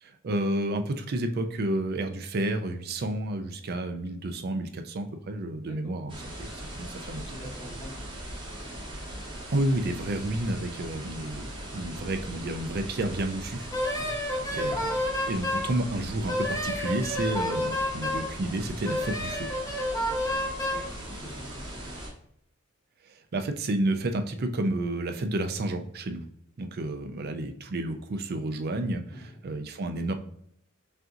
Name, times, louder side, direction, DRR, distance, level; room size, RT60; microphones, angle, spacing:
voice 1, 0.0-6.1 6.4-6.5 6.8-7.2 9.5-14.0 14.5-14.9 15.3-19.5 23.0-26.2 26.6-29.0 29.4-30.1, right 1 dB, 50° right, 7 dB, 0.4 m, -30 dB
voice 2, 5.6-6.1 6.5-8.0 14.0-14.3 20.7-22.1 29.1-29.4, equal, 30° left, -3 dB, 1.2 m, -46 dB
sound 1, 6.1-22.1, right 1 dB, 25° right, 1.1 m, -40 dB
Wind instrument woodwind instrument, 13.7-15.7 16.3-18.3 18.8-20.9, left 1 dB, 15° left, 0.9 m, -29 dB
5.6 x 2.6 x 2.5 m, 0.70 s
head